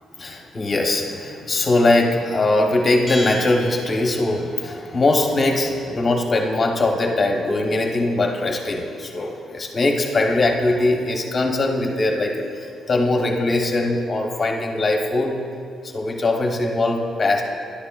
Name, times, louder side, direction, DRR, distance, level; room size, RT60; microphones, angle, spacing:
voice 1, 0.2-15.4 15.8-17.4, left 2 dB, 30° left, 1 dB, 0.9 m, -21 dB
Bell, 3.1-4.6, equal, 10° right, 2.4 m, -34 dB
11.5 x 9.4 x 2.4 m, 2.3 s
cardioid pair, 135°, 0 cm